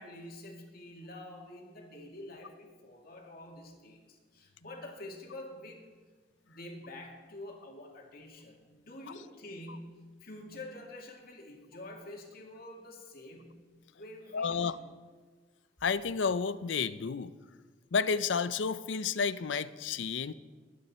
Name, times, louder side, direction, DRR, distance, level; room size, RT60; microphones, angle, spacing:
voice 1, 0.0-5.9 6.4-13.6 13.9-14.7, left 1 dB, 55° left, 0 dB, 2.4 m, -47 dB
voice 2, 14.3-14.8 15.8-17.3 17.9-20.3, left 5 dB, 80° left, 15 dB, 0.5 m, -31 dB
21.5 x 9.6 x 4.4 m, 1.4 s
head